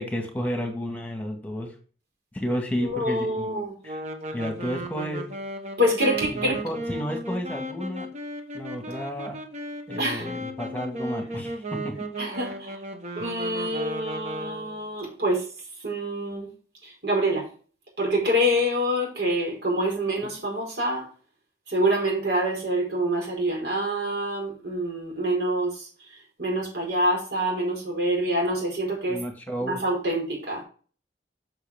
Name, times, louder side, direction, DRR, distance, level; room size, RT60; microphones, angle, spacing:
voice 1, 0.0-1.7 2.3-3.5 3.8-4.0 4.3-5.3 6.3-8.1 8.5-9.4 9.9-11.9 20.2-20.3 29.1-29.8, equal, 10° left, 3 dB, 1.9 m, -31 dB
voice 2, 2.8-3.7 5.8-6.6 10.0-10.3 12.2-12.8 13.2-15.4 15.8-16.5 16.8-17.5 18.0-21.0 21.7-25.9 26.4-29.2 29.6-30.6, equal, 75° right, -1 dB, 4.8 m, -26 dB
sound 1, 3.8-14.8, right 1 dB, 40° right, 1.3 m, -35 dB
8.1 x 6.6 x 3.6 m, 0.40 s
head